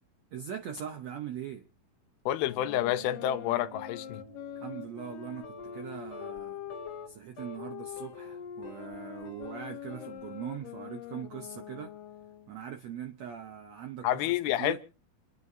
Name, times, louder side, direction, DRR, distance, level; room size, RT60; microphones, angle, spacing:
voice 1, 0.3-1.6 4.6-6.6 7.1-11.9 12.5-14.8, right 9 dB, 80° right, 1.5 m, -41 dB
voice 2, 2.3-4.2 14.0-14.8, left 13 dB, 90° left, 2.7 m, -29 dB
sound 1, 2.4-7.1 7.6-12.5, left 10 dB, 75° left, 2.5 m, -44 dB
sound 2, 2.6-12.7, right 7 dB, 60° right, 4.2 m, -56 dB
sound 3, 5.4-5.9 6.1-6.4 6.7-7.1 7.4-7.6 8.0-8.9 9.2-10.2, left 3 dB, 45° left, 1.9 m, -47 dB
28.0 x 11.0 x 2.7 m
omnidirectional pair, 4.3 m